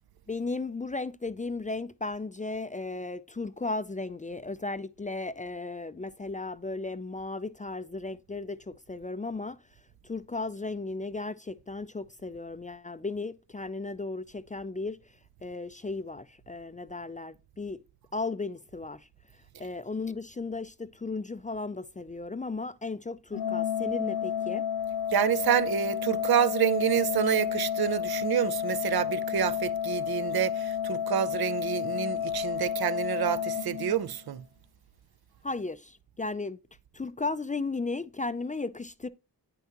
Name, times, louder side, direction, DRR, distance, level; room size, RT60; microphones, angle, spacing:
voice 1, 0.3-9.6 10.0-15.0 15.4-17.8 18.1-19.1 19.6-24.6 35.4-36.6 36.9-39.1, left 3 dB, 20° left, 0.3 m, -35 dB
Organ, 23.3-34.3, left 9 dB, 70° left, 0.8 m, -31 dB
voice 2, 25.1-34.4, right 10 dB, 70° right, 0.5 m, -28 dB
9.0 x 5.8 x 2.9 m
wide cardioid pair, 80°, 39 cm